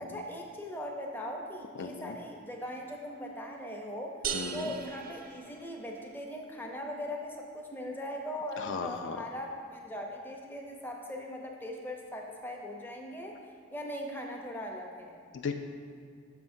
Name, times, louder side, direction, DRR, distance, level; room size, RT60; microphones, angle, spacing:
voice 1, 0.0-4.2 4.5-13.4 13.7-15.2, left 1 dB, 10° left, 0 dB, 0.6 m, -40 dB
voice 2, 1.8-2.2 4.3-4.7 8.6-9.3 15.3-15.5, left 5 dB, 55° left, 6 dB, 0.3 m, -37 dB
sound 1, 4.2-6.1, right 8 dB, 40° right, 0.3 m, -38 dB
9.2 x 6.7 x 2.6 m, 2.3 s
head